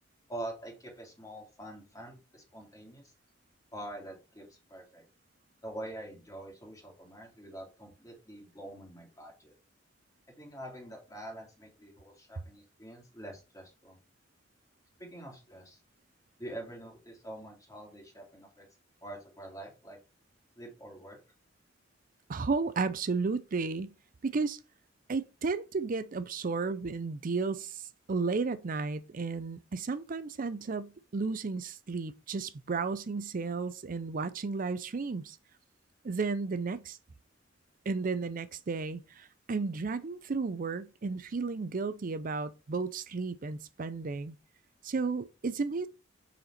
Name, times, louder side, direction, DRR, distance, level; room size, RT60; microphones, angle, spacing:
voice 1, 0.3-3.1 3.7-5.0 5.6-9.5 10.4-14.0 15.0-15.8 16.4-18.7 19.0-20.0 20.6-21.2, right 1 dB, 20° left, 2.4 m, -45 dB
voice 2, 22.3-23.9 24.2-24.6 25.1-27.8 28.1-35.4 36.0-37.0 37.9-44.4 44.8-45.9, right 4 dB, 45° right, 0.5 m, -33 dB
6.6 x 4.3 x 4.3 m
head